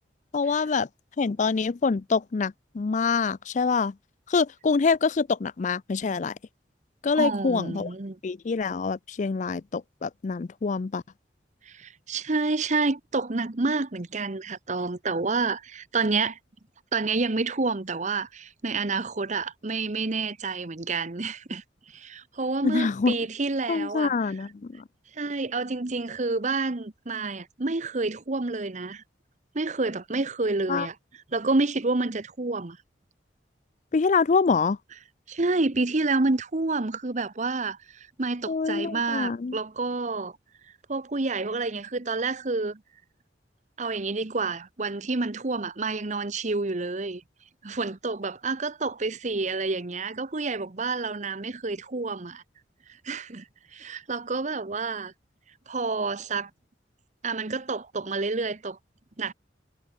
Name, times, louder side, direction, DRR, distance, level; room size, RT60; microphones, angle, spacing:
voice 1, 0.3-0.9 1.2-3.9 4.3-6.3 7.0-7.9 8.2-11.0 22.6-23.2 23.7-24.5 30.7-30.9 33.9-34.8 38.5-39.6, left 4 dB, 45° left, 0.4 m, -25 dB
voice 2, 7.1-8.2 11.6-16.4 16.9-24.3 25.1-29.0 29.5-31.0 31.3-32.8 35.3-40.4 40.9-42.8 43.8-47.2 47.6-52.4 53.0-55.1 55.7-56.5 57.2-58.8 59.2-59.3, right 3 dB, 40° right, 1.0 m, -29 dB
head